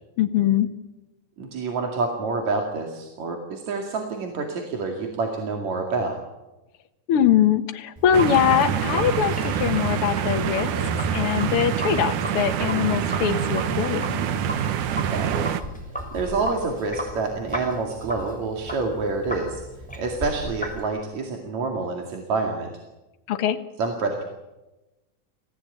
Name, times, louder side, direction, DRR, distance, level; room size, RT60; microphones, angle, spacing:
voice 1, 0.2-0.7 7.1-10.7 11.1-14.2 23.3-23.6, left 9 dB, 55° left, 6 dB, 1.9 m, -22 dB
voice 2, 1.4-6.2 14.9-15.4 16.1-19.6 20.0-22.7 23.8-24.2, right 3 dB, 65° right, 2 dB, 3.5 m, -27 dB
Sink (filling or washing), 8.0-20.8, equal, ahead, 6.2 m, -35 dB
sound 1, 8.1-15.6, right 8 dB, 90° right, 2.7 m, -26 dB
27.0 x 17.0 x 9.2 m, 1.0 s
omnidirectional pair, 3.5 m